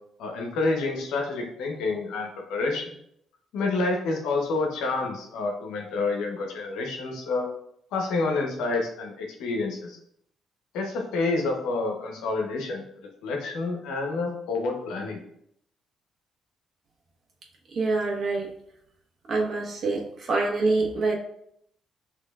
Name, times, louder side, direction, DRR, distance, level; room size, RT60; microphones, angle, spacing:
voice 1, 0.2-2.9 3.5-7.5 7.9-10.0 10.7-15.2, left 3 dB, 90° left, 1 dB, 1.0 m, -28 dB
voice 2, 17.7-18.5 19.3-21.1, right 3 dB, 55° right, 0 dB, 1.1 m, -25 dB
6.5 x 3.0 x 2.4 m, 0.71 s
cardioid pair, 80°, 0 cm